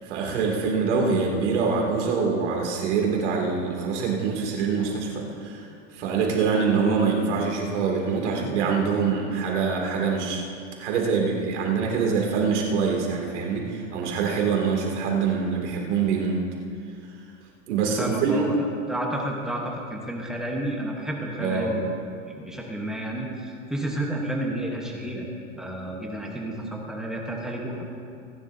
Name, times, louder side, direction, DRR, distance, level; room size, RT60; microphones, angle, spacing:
voice 1, 0.0-5.7 5.9-10.4 10.8-16.4 17.7-18.5 21.4-21.7, right 5 dB, 60° right, -1 dB, 2.6 m, -24 dB
voice 2, 17.8-21.9 22.3-25.3 25.6-27.7, right 1 dB, ahead, -2 dB, 1.0 m, -31 dB
26.0 x 11.0 x 2.7 m, 2.4 s
supercardioid pair, 170°, 39 cm